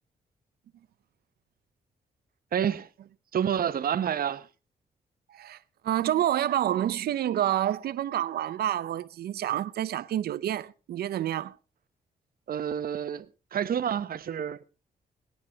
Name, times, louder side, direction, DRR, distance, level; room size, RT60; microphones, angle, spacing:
voice 1, 2.5-2.9 3.3-4.5 12.5-13.3 13.5-14.6, right 9 dB, 70° right, 1.0 m, -28 dB
voice 2, 5.8-11.6, right 12 dB, 85° right, 0.6 m, -28 dB
22.5 x 9.4 x 3.5 m
cardioid pair, 80°, 16 cm